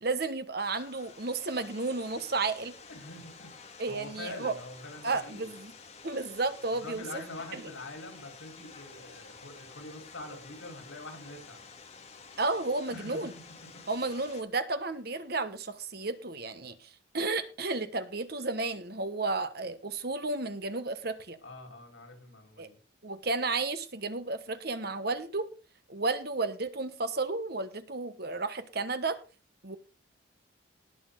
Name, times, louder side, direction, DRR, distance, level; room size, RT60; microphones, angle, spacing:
voice 1, 0.0-2.7 3.8-4.5 5.0-5.7 6.0-7.0 7.5-7.7 12.4-13.3 13.9-16.9 17.1-21.4 22.6-22.7 23.0-25.5 25.9-29.2 29.6-29.8, right 3 dB, 50° right, 11 dB, 1.3 m, -32 dB
sound 1, 0.6-14.4, left 5 dB, 35° left, 2.1 m, -51 dB
voice 2, 2.9-5.5 6.8-11.6 12.9-13.8 21.4-22.8, left 2 dB, 75° left, 4 dB, 4.8 m, -45 dB
19.0 x 7.1 x 3.9 m, 0.33 s
head